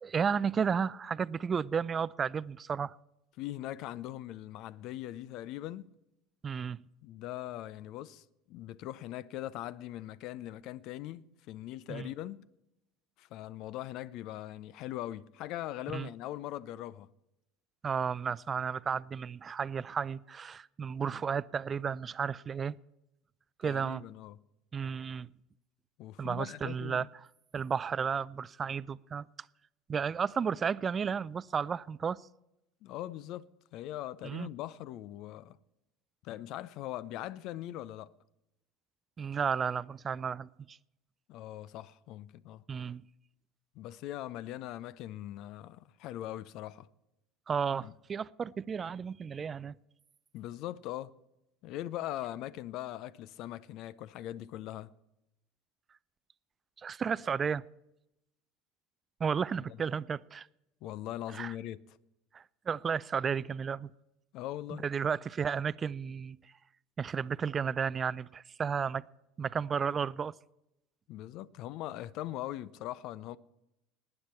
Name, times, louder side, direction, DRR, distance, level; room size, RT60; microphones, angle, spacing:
voice 1, 0.0-3.0 6.4-6.8 11.9-12.1 15.9-16.1 17.8-22.8 23.6-24.0 24.7-25.3 26.2-27.1 27.5-29.3 29.9-32.2 34.2-34.5 39.2-40.8 42.7-43.0 47.5-49.8 56.8-57.6 59.2-60.5 61.3-61.5 62.3-63.9 64.8-66.4 67.0-69.0 69.4-70.3, right 6 dB, 30° right, 0.4 m, -33 dB
voice 2, 3.4-5.8 7.0-12.4 13.2-17.1 23.6-24.4 26.0-27.1 32.8-33.5 33.7-35.6 36.2-38.1 41.3-42.6 43.8-46.9 47.8-47.9 50.3-51.1 51.6-54.9 59.6-59.8 60.8-61.8 64.3-64.8 71.1-73.4, left 13 dB, 60° left, 0.5 m, -41 dB
19.5 x 9.8 x 4.4 m
hypercardioid pair, 75°, 0 cm